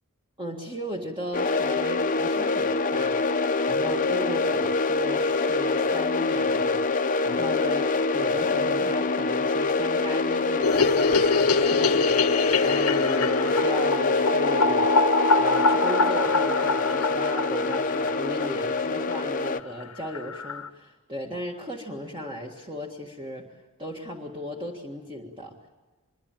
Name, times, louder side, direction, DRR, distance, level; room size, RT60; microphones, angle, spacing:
voice 1, 0.4-15.1 15.4-25.7, equal, 20° right, 0 dB, 1.7 m, -36 dB
sound 1, 1.3-19.6, left 3 dB, 35° left, 0.8 m, -25 dB
sound 2, 10.6-18.8 19.1-19.2 19.5-19.6 19.8-19.9 20.1-20.7, left 3 dB, 75° left, 1.0 m, -24 dB
25.0 x 23.0 x 9.0 m, 1.2 s
head